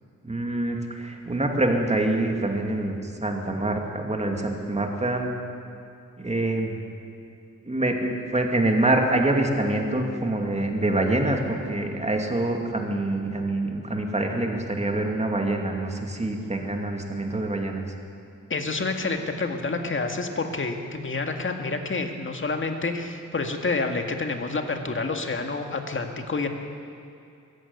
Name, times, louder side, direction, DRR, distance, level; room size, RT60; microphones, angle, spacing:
voice 1, 0.2-5.4 6.2-6.8 7.7-17.8, right 2 dB, 20° right, 2 dB, 2.5 m, -25 dB
voice 2, 18.5-26.5, left 3 dB, 40° left, 5 dB, 2.0 m, -28 dB
22.0 x 15.5 x 9.5 m, 2.6 s
wide cardioid pair, 155°, 31 cm